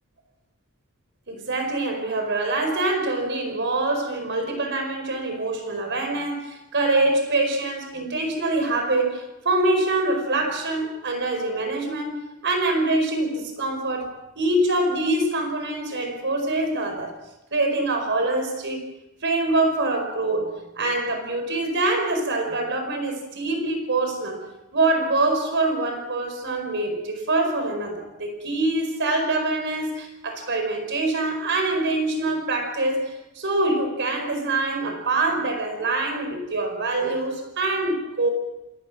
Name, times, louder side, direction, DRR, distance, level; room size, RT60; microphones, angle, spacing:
voice 1, 1.3-14.1 14.4-17.1 17.5-18.8 19.2-24.4 24.7-38.3, right 2 dB, 55° right, 5 dB, 4.9 m, -25 dB
29.0 x 18.5 x 6.1 m, 0.95 s
head